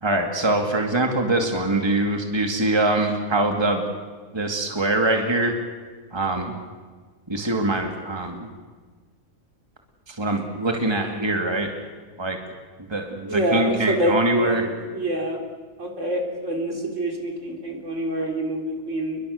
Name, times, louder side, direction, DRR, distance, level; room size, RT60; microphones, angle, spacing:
voice 1, 0.0-3.8 4.3-5.6 6.1-6.6 7.3-8.5 10.1-11.7 12.2-12.4 12.9-14.7, right 2 dB, 20° right, 3 dB, 2.5 m, -23 dB
voice 2, 13.2-15.4 15.8-19.2, right 1 dB, 65° right, 2 dB, 4.1 m, -26 dB
29.0 x 22.5 x 6.6 m, 1.4 s
omnidirectional pair, 1.4 m